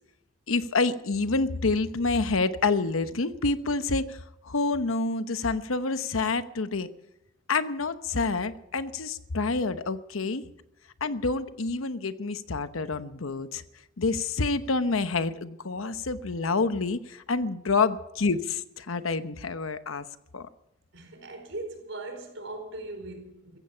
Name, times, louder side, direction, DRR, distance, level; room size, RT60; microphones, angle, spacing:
voice 1, 0.5-4.2 4.5-6.9 7.5-10.4 11.0-13.6 14.0-20.0 20.3-20.5, left 3 dB, 85° left, 11 dB, 1.0 m, -28 dB
voice 2, 20.9-23.6, right 2 dB, 70° right, 4 dB, 4.7 m, -39 dB
15.5 x 15.5 x 5.6 m, 0.86 s
head